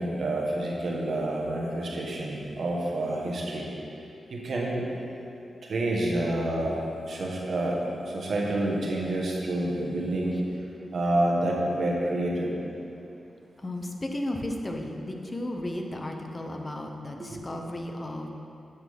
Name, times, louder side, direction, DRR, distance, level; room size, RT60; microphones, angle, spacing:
voice 1, 0.0-3.7 4.3-4.9 5.6-6.8 7.1-7.8 8.1-10.4 10.9-12.6 17.3-17.4, right 1 dB, 70° right, -3 dB, 1.4 m, -28 dB
voice 2, 13.6-18.3, left 1 dB, 35° left, 3 dB, 0.9 m, -34 dB
9.8 x 6.2 x 3.6 m, 2.7 s
supercardioid pair, 45°, 0 cm